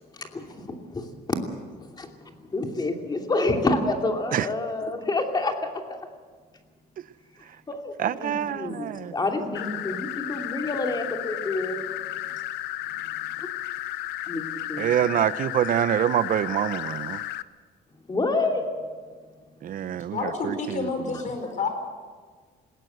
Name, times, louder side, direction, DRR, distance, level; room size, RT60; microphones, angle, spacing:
voice 1, 0.1-1.4 1.8-6.0 7.7-11.8 13.4-13.5 14.3-14.9 18.1-18.6, left 2 dB, 25° left, 3 dB, 2.8 m, -28 dB
voice 2, 8.0-9.1 14.8-17.2 19.6-21.2, right 10 dB, 55° right, 16 dB, 0.8 m, -26 dB
sound 1, 9.5-17.4, left 14 dB, 80° left, 0.8 m, -33 dB
voice 3, 20.1-21.7, left 4 dB, 45° left, 6 dB, 4.8 m, -30 dB
20.5 x 17.0 x 8.0 m, 1.5 s
cardioid pair, 110°, 17 cm